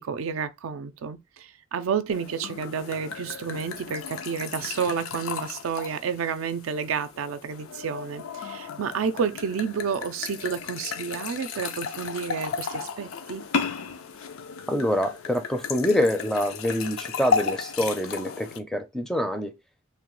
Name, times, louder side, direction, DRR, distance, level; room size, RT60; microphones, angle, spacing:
voice 1, 0.0-13.4, right 6 dB, 80° right, 0.4 m, -30 dB
sound 1, 2.1-18.6, left 5 dB, 85° left, 0.5 m, -34 dB
voice 2, 14.7-19.5, left 1 dB, ahead, 0.4 m, -26 dB
3.1 x 2.2 x 3.0 m
head